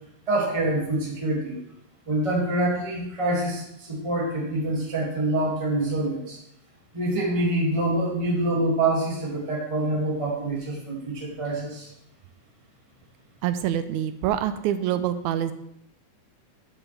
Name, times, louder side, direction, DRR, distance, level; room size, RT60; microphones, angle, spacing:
voice 1, 0.3-1.5 2.1-6.4 6.9-11.9, right 1 dB, 15° right, -4 dB, 1.6 m, -26 dB
voice 2, 13.4-15.5, right 10 dB, 80° right, 11 dB, 1.9 m, -26 dB
9.7 x 6.9 x 3.3 m, 0.77 s
omnidirectional pair, 3.5 m